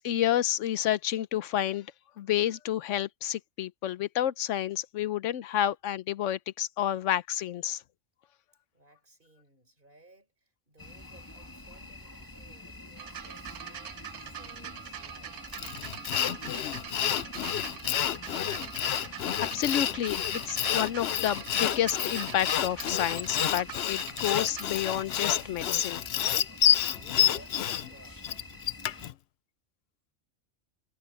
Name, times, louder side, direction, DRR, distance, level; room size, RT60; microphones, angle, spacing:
voice 1, 0.0-1.9 2.2-7.8 19.0-26.0, left 11 dB, 90° left, 1.0 m, -30 dB
voice 2, 8.7-15.6 26.9-28.2, right 2 dB, 45° right, 4.5 m, -59 dB
sound 1, 10.8-29.1, left 2 dB, 15° left, 2.5 m, -47 dB
sound 2, 13.0-24.7 25.6-25.7, right 10 dB, 80° right, 1.1 m, -43 dB
Sawing, 15.5-29.1, left 10 dB, 65° left, 0.8 m, -29 dB
omnidirectional pair, 1.2 m